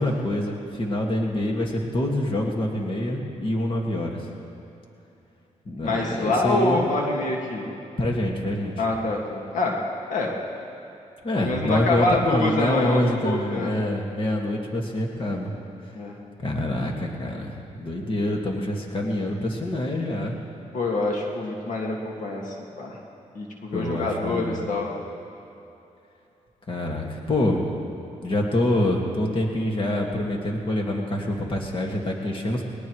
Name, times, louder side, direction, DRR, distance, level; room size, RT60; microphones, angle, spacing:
voice 1, 0.0-4.3 5.7-6.9 8.0-8.8 11.2-15.5 16.4-20.4 23.7-24.6 26.7-27.6 28.2-32.6, left 1 dB, 40° left, 0 dB, 2.0 m, -26 dB
voice 2, 5.8-7.7 8.8-9.8 10.1-10.3 11.4-13.7 15.9-16.1 20.7-23.0 23.4-24.9, left 2 dB, 75° left, -1 dB, 2.0 m, -26 dB
20.5 x 19.5 x 3.2 m, 2.8 s
cardioid pair, 90°, 13 cm